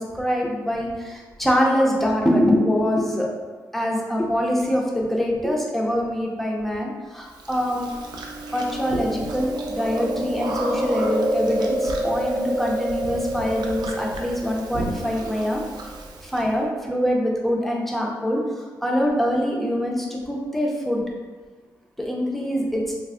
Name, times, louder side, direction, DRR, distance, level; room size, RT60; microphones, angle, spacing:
voice 1, 0.0-3.3 3.7-7.9 8.5-15.6 16.2-21.0 22.0-22.8, equal, 5° left, -2 dB, 0.6 m, -24 dB
Chewing mastication, 7.5-16.4, right 1 dB, 80° right, 0.4 m, -28 dB
3.2 x 2.0 x 3.6 m, 1.4 s
wide cardioid pair, 110°, 7 cm